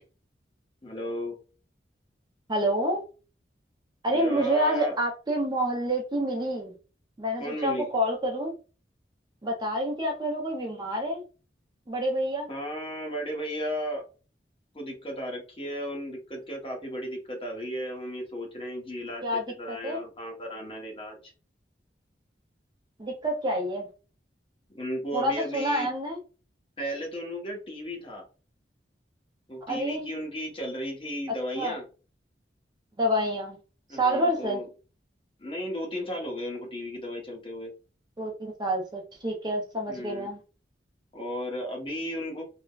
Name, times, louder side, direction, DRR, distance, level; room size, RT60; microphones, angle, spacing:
voice 1, 0.8-1.4 4.1-4.9 7.4-7.9 12.5-14.0 14.7-21.3 24.7-25.9 26.8-28.2 29.5-31.9 33.9-34.7 35.4-37.7 39.9-40.3 41.1-42.4, equal, 30° left, 0 dB, 0.9 m, -35 dB
voice 2, 2.5-3.0 4.0-6.7 7.2-8.5 9.4-11.2 11.9-12.5 19.2-20.0 23.0-23.9 25.1-26.2 29.7-30.1 31.6-31.8 33.0-33.6 33.9-34.6 38.2-40.4, equal, 25° right, 2 dB, 0.5 m, -28 dB
3.3 x 2.1 x 2.3 m, 0.34 s
head